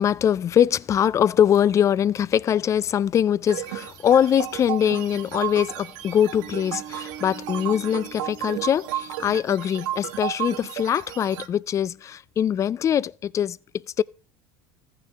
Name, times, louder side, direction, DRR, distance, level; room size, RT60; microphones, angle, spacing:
voice 1, 0.0-14.0, left 9 dB, 30° left, 0.3 m, -22 dB
sound 1, 3.5-11.5, right 13 dB, 80° right, 0.9 m, -33 dB
sound 2, 4.2-5.8 6.3-9.4, right 10 dB, 50° right, 0.8 m, -44 dB
14.5 x 6.7 x 3.3 m
supercardioid pair, 95°, 10 cm